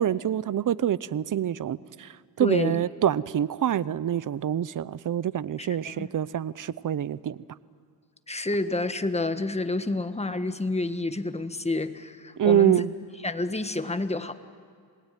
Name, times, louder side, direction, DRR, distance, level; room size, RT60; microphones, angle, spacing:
voice 1, 0.0-2.1 2.4-7.4 12.4-12.9, right 10 dB, 50° right, 19 dB, 0.7 m, -26 dB
voice 2, 2.4-2.8 5.6-6.1 8.3-12.8 13.2-14.3, left 2 dB, 15° left, 10 dB, 1.4 m, -29 dB
27.5 x 19.5 x 9.3 m, 2.1 s
cardioid pair, 80°, 42 cm